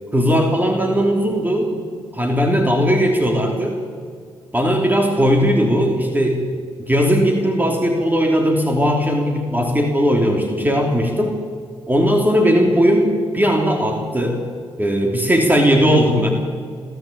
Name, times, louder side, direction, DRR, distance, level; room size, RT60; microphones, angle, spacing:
voice 1, 0.1-1.8 2.1-3.8 4.5-11.3 11.9-14.4 14.8-16.3, equal, 15° right, 2 dB, 3.2 m, -18 dB
22.0 x 13.5 x 8.8 m, 2.1 s
supercardioid pair, 55°, 11 cm